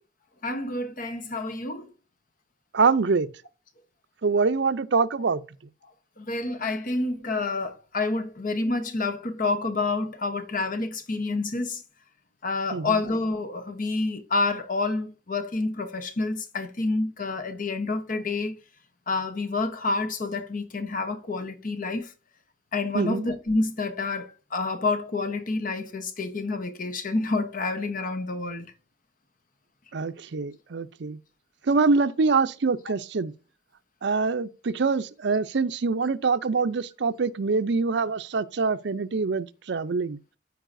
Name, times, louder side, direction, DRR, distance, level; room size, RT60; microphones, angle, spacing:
voice 1, 0.4-1.9 6.2-11.8 12.4-18.6 19.1-22.1 22.7-28.6, left 3 dB, 45° left, 0.9 m, -28 dB
voice 2, 2.7-3.3 4.2-5.4 12.7-13.0 22.9-23.3 29.9-31.2 31.7-33.3 34.0-40.2, right 4 dB, 65° right, 0.5 m, -24 dB
14.0 x 4.7 x 2.6 m
head